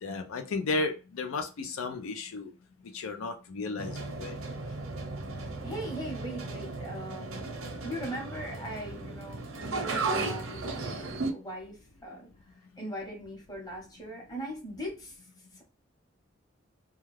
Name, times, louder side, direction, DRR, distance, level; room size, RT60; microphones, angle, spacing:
voice 1, 0.0-2.5 2.9-4.4, left 3 dB, 85° left, 6 dB, 0.4 m, -34 dB
sound 1, 3.8-11.3, right 3 dB, 85° right, 0.6 m, -35 dB
voice 2, 5.6-7.5 7.8-12.3 12.8-15.2, right 1 dB, 20° left, -2 dB, 0.9 m, -40 dB
2.3 x 2.2 x 3.1 m, 0.31 s
head